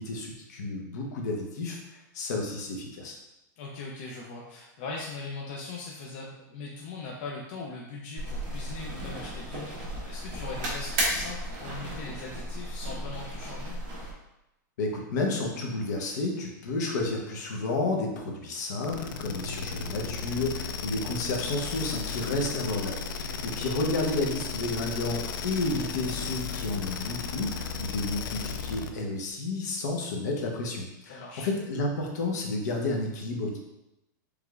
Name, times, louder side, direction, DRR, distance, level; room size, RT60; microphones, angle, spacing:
voice 1, 0.0-1.8 2.1-3.2 14.8-33.6, left 2 dB, 60° left, 1 dB, 0.9 m, -31 dB
voice 2, 3.6-13.8 23.3-23.5 31.1-31.5, left 3 dB, 35° left, -2 dB, 0.5 m, -40 dB
sound 1, 8.2-14.1, right 1 dB, 35° right, 1.3 m, -34 dB
sound 2, 18.8-29.0, left 5 dB, 90° left, 0.5 m, -35 dB
4.9 x 3.4 x 2.4 m, 0.92 s
supercardioid pair, 180°, 10 cm